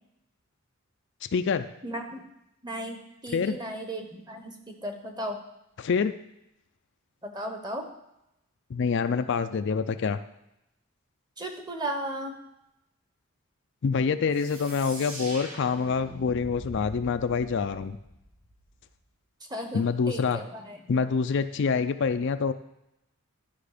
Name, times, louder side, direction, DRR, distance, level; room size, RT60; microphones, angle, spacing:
voice 1, 1.2-1.7 3.3-3.6 5.8-6.1 8.7-10.2 13.8-18.0 19.7-20.4 20.9-22.5, left 5 dB, 55° left, 10 dB, 0.4 m, -26 dB
voice 2, 1.8-2.2 2.6-5.4 7.2-7.8 11.4-12.3 19.5-20.8, right 1 dB, 20° right, 4 dB, 1.1 m, -35 dB
sound 1, 14.3-18.9, right 1 dB, 65° right, 2.8 m, -43 dB
12.0 x 5.6 x 5.0 m, 0.86 s
head